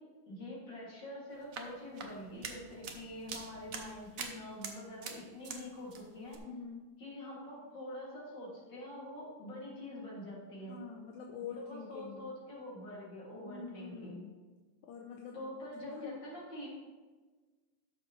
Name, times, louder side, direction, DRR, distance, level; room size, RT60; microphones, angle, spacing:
voice 1, 0.3-6.4 7.0-10.8 11.6-14.2 15.3-16.7, left 1 dB, 60° left, -5 dB, 3.3 m, -45 dB
sound 1, 1.3-5.6 5.9-6.4, right 5 dB, 55° right, 1.1 m, -45 dB
voice 2, 6.5-6.9 10.7-12.3 13.4-14.3 14.8-15.5 15.9-16.2, left 6 dB, 75° left, 1 dB, 1.5 m, -46 dB
12.5 x 6.9 x 3.2 m, 1.3 s
omnidirectional pair, 2.3 m